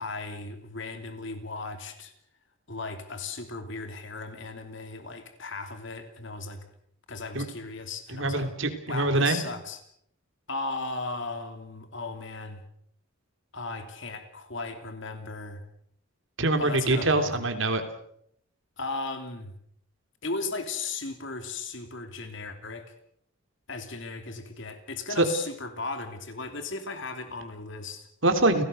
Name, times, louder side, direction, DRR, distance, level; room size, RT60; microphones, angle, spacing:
voice 1, 0.0-2.1 2.7-6.7 7.1-8.5 8.9-9.8 10.5-12.6 13.5-15.6 16.6-17.5 18.8-19.6 20.2-22.9 23.7-28.1, left 3 dB, 55° left, 7 dB, 2.9 m, -36 dB
voice 2, 8.1-9.4 16.4-17.8 25.2-25.3 28.2-28.6, right 2 dB, 60° right, 7 dB, 3.4 m, -24 dB
29.5 x 18.0 x 6.7 m, 0.70 s
head